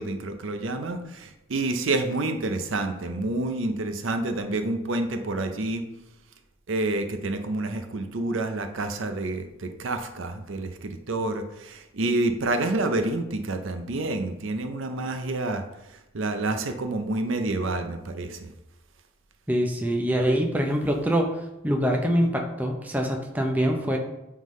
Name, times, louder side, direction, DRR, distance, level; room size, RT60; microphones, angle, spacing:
voice 1, 0.0-5.8 6.7-15.6 16.1-18.5, right 2 dB, 65° right, 7 dB, 0.6 m, -28 dB
voice 2, 19.5-21.3 21.6-24.0, equal, 10° right, 2 dB, 0.5 m, -24 dB
9.1 x 3.7 x 3.1 m, 0.94 s
head